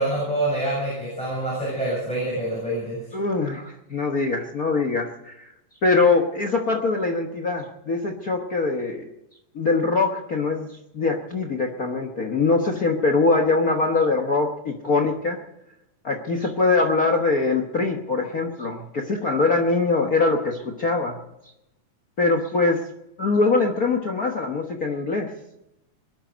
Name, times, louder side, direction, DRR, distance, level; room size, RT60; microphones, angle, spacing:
voice 1, 0.0-3.0, right 1 dB, ahead, -5 dB, 7.5 m, -26 dB
voice 2, 3.1-5.5 5.8-9.0 9.5-15.4 16.0-21.2 22.2-22.8 23.2-25.3, left 3 dB, 75° left, 5 dB, 0.8 m, -23 dB
21.5 x 12.0 x 5.2 m, 0.87 s
omnidirectional pair, 3.7 m